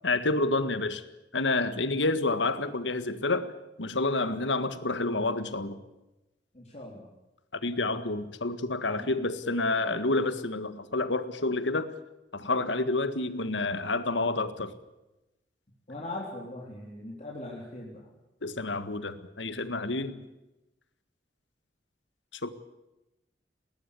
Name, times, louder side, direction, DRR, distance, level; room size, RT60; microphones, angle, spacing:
voice 1, 0.0-1.0 1.3-3.5 3.8-5.8 7.6-11.9 12.3-14.7 18.4-20.1 22.4-22.5, left 2 dB, 90° left, 12 dB, 1.8 m, -29 dB
voice 2, 6.5-7.1 8.9-9.2 15.9-18.1 20.1-20.2, left 2 dB, 40° left, -2 dB, 3.8 m, -40 dB
20.5 x 19.0 x 8.4 m, 0.97 s
head